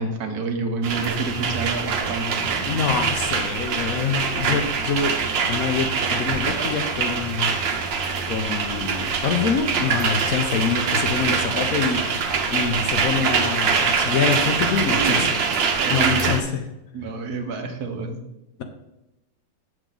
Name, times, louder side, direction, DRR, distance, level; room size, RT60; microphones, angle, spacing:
voice 1, 0.0-2.7 14.9-15.4 15.7-16.3 16.9-18.2, right 3 dB, 60° right, 5 dB, 1.5 m, -29 dB
sound 1, 0.8-16.4, right 5 dB, 75° right, 1.7 m, -24 dB
voice 2, 2.7-7.6 8.2-15.3 15.9-16.6, left 6 dB, 60° left, 6 dB, 1.0 m, -25 dB
7.8 x 7.6 x 3.8 m, 0.92 s
omnidirectional pair, 2.0 m